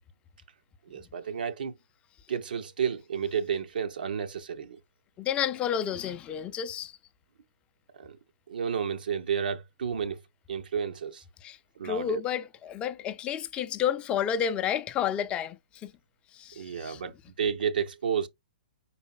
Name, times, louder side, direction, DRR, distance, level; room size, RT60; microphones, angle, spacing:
voice 1, 0.9-1.7 2.3-4.8 7.9-8.2 8.5-10.2 10.5-11.2 11.8-12.2 16.6-18.3, right 7 dB, 70° right, 0.6 m, -31 dB
voice 2, 5.2-6.9 11.4-11.6 11.8-15.9 16.3-17.0, left 9 dB, 20° left, 0.5 m, -30 dB
5.1 x 4.1 x 2.3 m
figure-of-eight pair, 120°, 5 cm